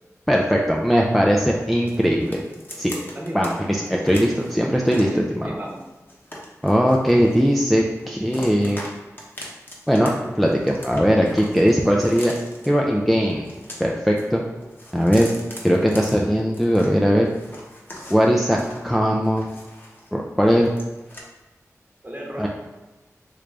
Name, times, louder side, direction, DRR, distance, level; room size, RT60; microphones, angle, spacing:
voice 1, 0.3-2.4 2.8-2.9 3.3-5.5 6.6-8.8 9.9-12.3 12.7-13.5 13.8-14.4 14.9-15.3 15.6-17.3 18.1-18.6 18.8-19.5 20.1-20.7 22.4-22.5, equal, ahead, -1 dB, 0.4 m, -19 dB
sound 1, 1.9-3.5 3.8-5.2 5.7-7.7 8.0-8.9 9.2-10.1 10.3-12.7 13.3-14.3 14.6-16.9 17.2-20.1 20.4-21.2, left 1 dB, 35° left, 0.8 m, -40 dB
voice 2, 2.9-3.5 5.1-5.8 22.0-22.5, right 1 dB, 30° right, -3 dB, 0.9 m, -34 dB
3.2 x 2.5 x 3.3 m, 1.1 s
cardioid pair, 40°, 6 cm